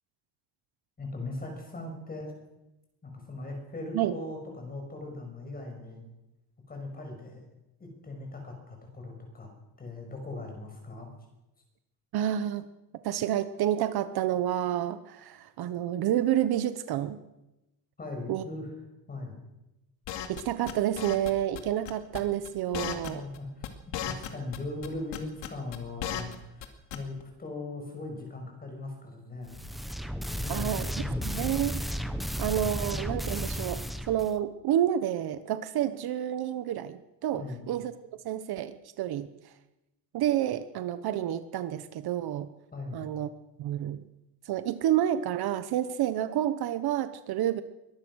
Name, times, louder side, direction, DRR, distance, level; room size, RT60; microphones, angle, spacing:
voice 1, 1.0-2.4 3.0-6.0 6.7-7.4 7.8-9.5 9.8-11.1 18.0-18.7 19.1-19.4 22.8-23.7 24.0-29.6 30.3-31.5 32.5-32.7 37.3-37.7 42.7-43.1, left 2 dB, 20° left, 3 dB, 6.2 m, -39 dB
voice 2, 12.1-12.7 13.0-17.2 18.3-18.5 20.3-23.2 30.5-30.9 31.2-31.8 32.4-33.8 34.1-37.9 38.2-39.3 40.1-42.5 42.9-43.3 43.6-44.0 44.5-47.6, right 11 dB, 55° right, 12 dB, 1.1 m, -29 dB
sound 1, 20.1-20.4 20.7-21.3 21.5-21.6 21.8-22.5 22.7-23.4 23.6-24.6 24.8-26.3 26.6-26.7 26.9-27.2, left 10 dB, 70° left, 2.5 m, -35 dB
sound 2, 29.5-34.3, equal, ahead, 0.9 m, -33 dB
23.0 x 19.0 x 6.4 m, 0.95 s
cardioid pair, 170°, 44 cm